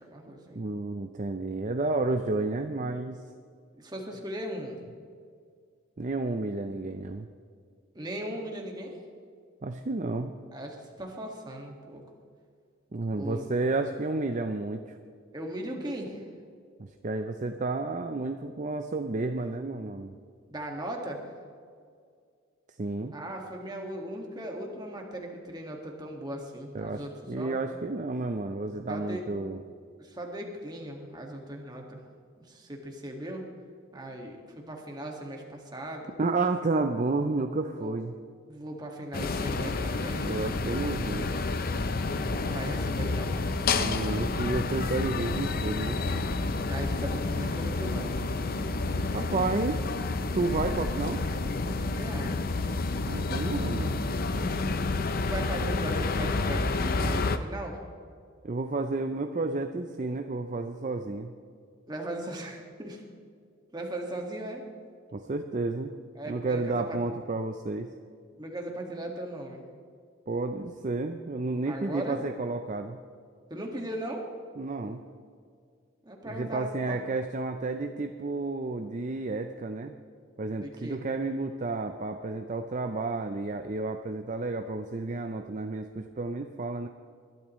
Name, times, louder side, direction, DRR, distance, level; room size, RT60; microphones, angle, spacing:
voice 1, 0.0-0.6 3.7-4.8 8.0-9.0 10.5-12.0 13.1-13.5 15.3-16.3 20.5-21.2 23.1-27.6 28.9-29.2 30.0-32.0 32.4-33.5 33.9-36.1 37.8-37.9 38.5-40.3 42.4-43.4 46.7-48.1 52.0-52.3 55.2-57.8 61.9-63.0 63.7-64.7 66.2-67.0 68.4-69.6 71.7-72.2 73.5-74.3 76.0-77.0 80.6-81.0, right 1 dB, 20° right, 1 dB, 1.9 m, -38 dB
voice 2, 0.5-3.2 6.0-7.3 9.6-10.3 12.9-15.0 16.8-20.2 22.8-23.1 26.7-27.0 27.3-29.6 36.2-38.1 40.2-41.3 43.8-46.0 49.1-49.8 50.3-51.2 53.1-54.0 58.4-61.3 65.1-65.9 66.2-67.9 70.3-73.0 74.6-75.0 76.3-80.0 80.4-86.9, right 3 dB, 35° right, 6 dB, 0.5 m, -31 dB
sound 1, 39.1-57.4, left 3 dB, 45° left, 0.6 m, -29 dB
21.5 x 12.0 x 3.1 m, 2.2 s
head